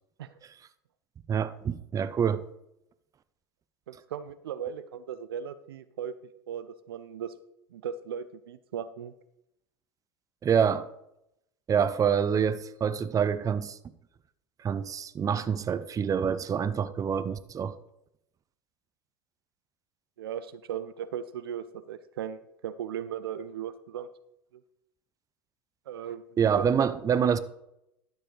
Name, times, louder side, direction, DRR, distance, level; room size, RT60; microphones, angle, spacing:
voice 1, 1.3-2.4 10.4-10.9 11.7-13.8 14.6-17.8 26.4-27.4, right 7 dB, 30° right, 0.6 m, -26 dB
voice 2, 3.9-6.2 6.5-7.3 7.7-9.1 20.2-24.1 24.5-24.6 25.9-26.9, right 8 dB, 80° right, 0.5 m, -37 dB
11.5 x 7.5 x 3.3 m
hypercardioid pair, 80°, 12 cm